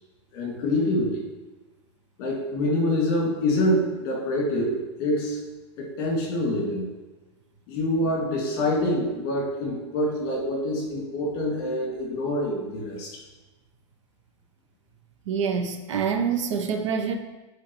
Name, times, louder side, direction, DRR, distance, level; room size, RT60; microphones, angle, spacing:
voice 1, 0.3-1.3 2.2-5.4 5.8-6.9 7.7-13.2, left 1 dB, 35° left, -2 dB, 2.1 m, -26 dB
voice 2, 15.3-17.2, right 6 dB, 75° right, 6 dB, 0.7 m, -26 dB
9.2 x 4.5 x 3.0 m, 1.1 s
supercardioid pair, 170°, 16 cm